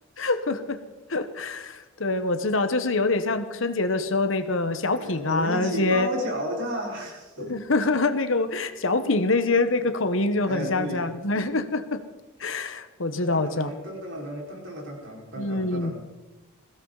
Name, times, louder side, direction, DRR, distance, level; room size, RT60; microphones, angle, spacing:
voice 1, 0.2-0.8 1.1-6.1 7.5-12.0 12.4-13.7 15.4-15.9, left 2 dB, 70° left, 9 dB, 1.2 m, -25 dB
voice 2, 4.9-7.6 10.5-11.1 13.2-15.9, equal, 65° right, -2 dB, 5.0 m, -33 dB
21.5 x 16.0 x 4.1 m, 1.1 s
head